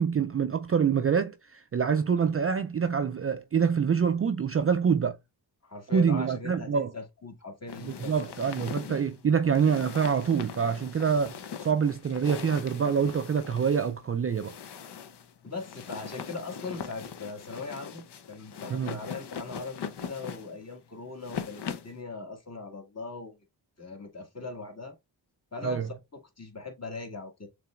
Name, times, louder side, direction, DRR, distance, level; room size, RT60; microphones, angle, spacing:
voice 1, 0.0-5.2 5.9-6.9 7.8-14.5 18.7-19.0 25.6-25.9, right 6 dB, 35° right, 0.4 m, -26 dB
voice 2, 5.6-8.3 15.4-23.4 23.8-25.0 25.5-27.5, left 3 dB, 35° left, 1.9 m, -40 dB
sound 1, 7.7-22.0, left 7 dB, 70° left, 0.8 m, -41 dB
6.6 x 3.3 x 2.4 m
cardioid pair, 60°, 43 cm